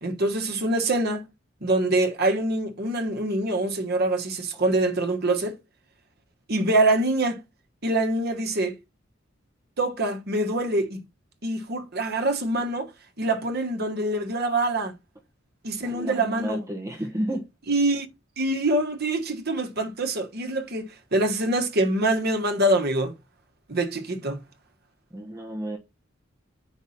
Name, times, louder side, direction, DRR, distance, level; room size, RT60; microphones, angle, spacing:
voice 1, 0.0-1.3 1.6-5.6 6.5-7.4 7.8-8.8 9.8-11.0 11.4-12.9 13.2-14.9 15.6-16.6 17.7-18.1 18.4-23.1 23.7-24.4, right 2 dB, 55° right, 1.4 m, -25 dB
voice 2, 15.8-17.5 25.1-25.8, right 1 dB, 15° right, 1.2 m, -31 dB
8.1 x 5.4 x 4.2 m
head